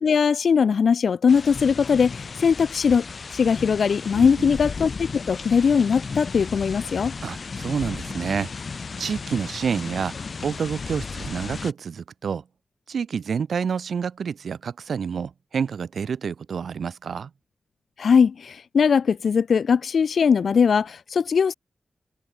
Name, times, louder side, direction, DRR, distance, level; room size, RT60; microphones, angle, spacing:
voice 1, 0.0-3.1 3.3-7.1 18.0-21.5, left 6 dB, 75° left, 1.9 m, -20 dB
sound 1, 1.3-11.7, left 4 dB, 50° left, 3.7 m, -35 dB
voice 2, 4.1-4.6 7.2-8.5 9.0-10.2 10.4-12.4 12.9-17.3, right 6 dB, 85° right, 5.8 m, -28 dB
wide cardioid pair, 145°, 0 cm